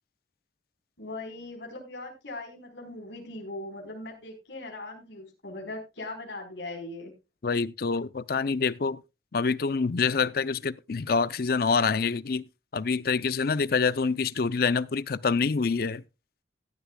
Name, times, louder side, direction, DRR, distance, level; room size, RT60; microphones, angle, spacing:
voice 1, 1.0-7.1, left 2 dB, 75° left, 4.3 m, -40 dB
voice 2, 7.4-9.0 9.3-12.4 12.7-16.0, left 5 dB, 55° left, 0.5 m, -26 dB
15.5 x 11.5 x 2.3 m
head